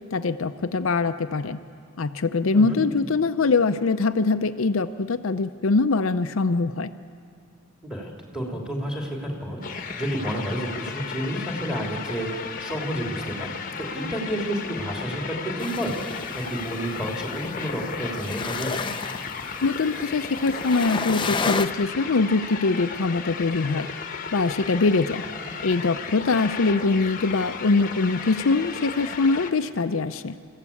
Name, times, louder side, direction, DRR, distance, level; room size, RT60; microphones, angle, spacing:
voice 1, 0.0-1.6 2.0-6.9 19.6-23.9 24.3-25.2 25.6-30.4, left 3 dB, 70° left, 9 dB, 0.6 m, -23 dB
voice 2, 7.8-13.5 13.8-18.9 25.4-25.5, equal, 5° right, 1 dB, 3.0 m, -30 dB
sound 1, 9.6-29.5, left 5 dB, 40° left, 1.1 m, -35 dB
sound 2, 15.6-21.7, left 4 dB, 20° left, 0.6 m, -32 dB
28.0 x 15.0 x 8.5 m, 2.4 s
head